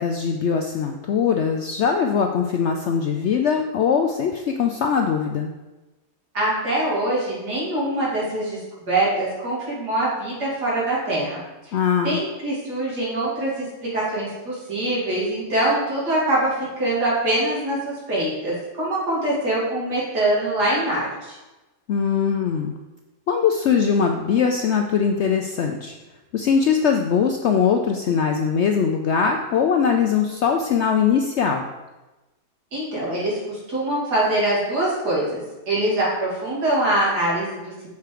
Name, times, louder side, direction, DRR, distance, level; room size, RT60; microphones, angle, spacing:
voice 1, 0.0-5.5 11.7-12.2 21.9-22.7 23.3-25.9 26.3-31.6, left 6 dB, 70° left, 3 dB, 0.6 m, -21 dB
voice 2, 6.3-8.6 8.9-11.7 12.0-21.4 32.7-35.4 35.7-37.9, right 1 dB, 90° right, -6 dB, 3.1 m, -24 dB
6.9 x 4.6 x 4.9 m, 1.1 s
omnidirectional pair, 1.7 m